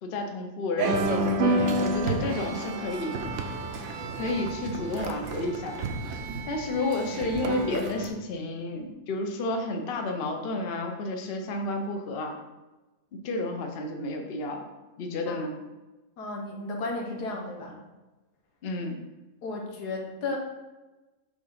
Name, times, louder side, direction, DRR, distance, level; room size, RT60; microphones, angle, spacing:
voice 1, 0.0-3.2 4.1-5.9 6.5-12.4 13.2-14.7 15.0-15.5 18.6-19.0, left 2 dB, 50° left, 4 dB, 0.7 m, -31 dB
sound 1, 0.8-8.1, right 2 dB, 60° right, 0.8 m, -30 dB
voice 2, 16.2-17.8 19.4-20.4, left 2 dB, 90° left, 1 dB, 1.6 m, -34 dB
4.9 x 3.8 x 5.4 m, 1.1 s
omnidirectional pair, 1.6 m